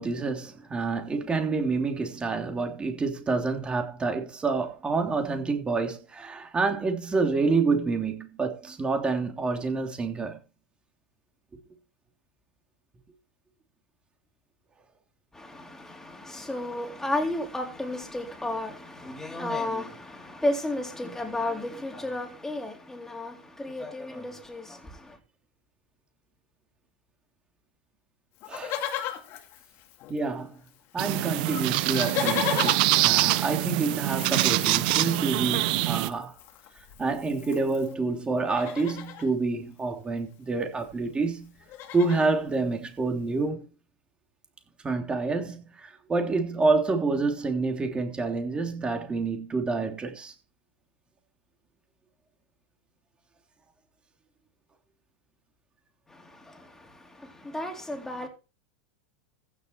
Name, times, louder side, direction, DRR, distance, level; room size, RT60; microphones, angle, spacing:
voice 1, 0.0-10.4 28.5-28.9 30.1-30.6 30.9-36.4 37.0-41.5 41.9-43.6 44.8-50.3, right 3 dB, 20° right, 3.2 m, -28 dB
voice 2, 15.3-25.2 56.1-58.3, left 1 dB, 10° left, 3.8 m, -33 dB
Livestock farm animals working animals, 28.4-30.4 30.7-30.8 31.0-37.9 38.4-39.3 40.5-40.6 40.8-41.1 41.4-42.4 43.0-43.1, left 10 dB, 50° left, 2.5 m, -36 dB
sound 1, 31.0-36.1, right 18 dB, 60° right, 0.7 m, -25 dB
15.5 x 6.6 x 4.4 m
hypercardioid pair, 95°, 5 cm